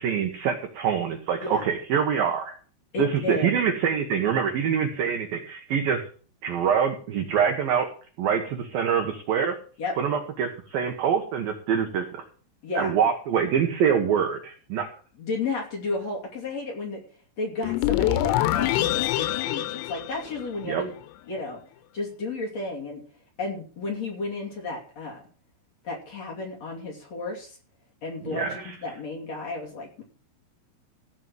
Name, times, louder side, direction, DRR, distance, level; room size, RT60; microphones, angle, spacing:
voice 1, 0.0-2.6 3.0-6.0 6.4-7.9 8.2-9.5 10.0-12.2 12.8-14.9 20.6-20.8 28.3-28.8, right 7 dB, 80° right, 5 dB, 2.0 m, -25 dB
voice 2, 1.4-1.7 2.9-3.6 9.8-9.9 12.6-13.0 15.2-17.0 17.4-20.9 21.3-21.6 21.9-23.0 23.4-25.2 25.8-27.6 28.0-30.0, left 3 dB, 40° left, -1 dB, 3.1 m, -32 dB
sound 1, 17.6-20.9, left 15 dB, 90° left, 3.5 m, -25 dB
16.0 x 5.5 x 7.7 m, 0.41 s
omnidirectional pair, 5.9 m